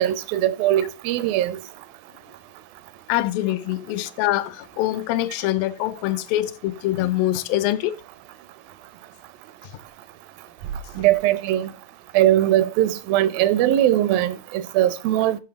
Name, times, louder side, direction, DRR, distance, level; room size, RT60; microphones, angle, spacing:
voice 1, 0.0-1.6 11.0-11.7 12.1-15.4, right 13 dB, 85° right, 2.4 m, -20 dB
voice 2, 3.1-8.0 10.9-11.0, left 15 dB, 85° left, 2.2 m, -24 dB
9.3 x 5.5 x 3.8 m
omnidirectional pair, 4.1 m